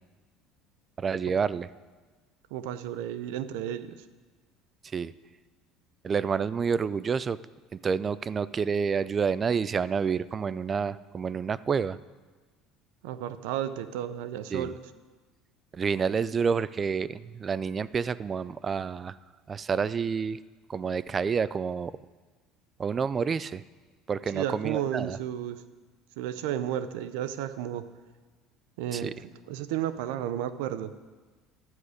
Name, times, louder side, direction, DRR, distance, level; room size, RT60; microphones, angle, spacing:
voice 1, 1.0-1.7 4.9-5.1 6.0-7.4 7.7-12.0 14.5-14.7 15.7-19.2 19.5-20.4 20.7-21.9 22.8-23.6 24.1-25.2 28.9-29.1, right 6 dB, 30° right, 18 dB, 0.3 m, -29 dB
voice 2, 2.5-4.0 13.0-14.8 24.3-25.6 26.2-27.9 28.8-30.9, right 11 dB, 80° right, 13 dB, 0.6 m, -33 dB
12.5 x 9.4 x 5.0 m, 1.3 s
supercardioid pair, 105°, 0 cm